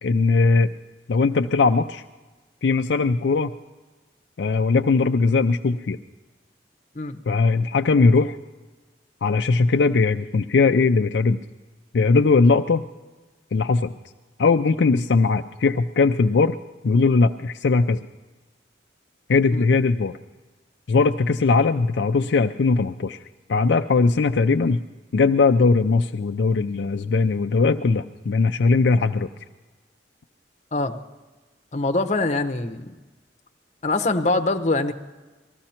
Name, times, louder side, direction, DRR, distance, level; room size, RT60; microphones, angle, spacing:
voice 1, 0.0-0.7 1.1-2.0 2.6-3.5 4.4-6.0 7.3-8.4 9.2-11.4 11.9-12.8 13.5-13.9 14.4-16.6 16.8-18.0 19.3-20.1 20.9-23.2 23.5-24.8 25.1-29.3, left 4 dB, 65° left, 5 dB, 0.4 m, -19 dB
voice 2, 31.7-32.9 33.8-34.9, left 2 dB, 40° left, 6 dB, 0.8 m, -23 dB
19.5 x 14.5 x 4.4 m, 1.2 s
head